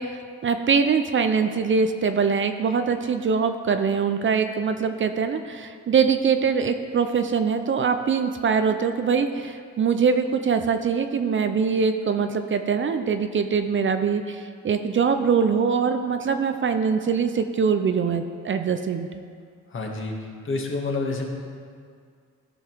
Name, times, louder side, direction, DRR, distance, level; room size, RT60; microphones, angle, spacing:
voice 1, 0.0-19.1, right 6 dB, 40° right, 8 dB, 0.6 m, -23 dB
voice 2, 19.7-20.1 20.4-21.3, left 3 dB, 40° left, 1 dB, 1.6 m, -28 dB
14.5 x 5.5 x 4.6 m, 2.1 s
cardioid pair, 90°, 30 cm